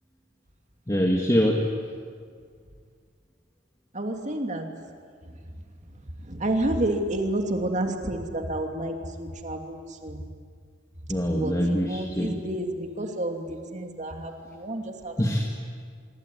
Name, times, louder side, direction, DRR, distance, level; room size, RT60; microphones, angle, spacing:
voice 1, 0.9-1.7 11.1-12.4 15.2-15.5, equal, 15° left, 0 dB, 1.9 m, -24 dB
voice 2, 3.9-4.7 5.3-5.4 6.2-10.2 11.3-15.1, right 1 dB, 40° right, 4 dB, 2.8 m, -30 dB
25.5 x 22.5 x 9.9 m, 2.1 s
head